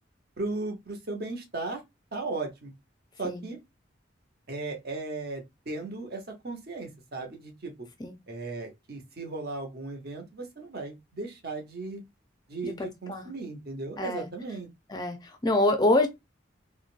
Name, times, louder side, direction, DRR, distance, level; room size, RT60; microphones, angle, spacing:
voice 1, 0.4-1.8 2.1-2.7 3.2-3.6 4.5-7.7 8.3-12.0 12.5-14.7, right 3 dB, 55° right, 0.9 m, -36 dB
voice 2, 12.6-13.3 14.0-14.3 14.9-16.1, left 2 dB, 20° left, 0.4 m, -26 dB
3.7 x 2.2 x 2.4 m
head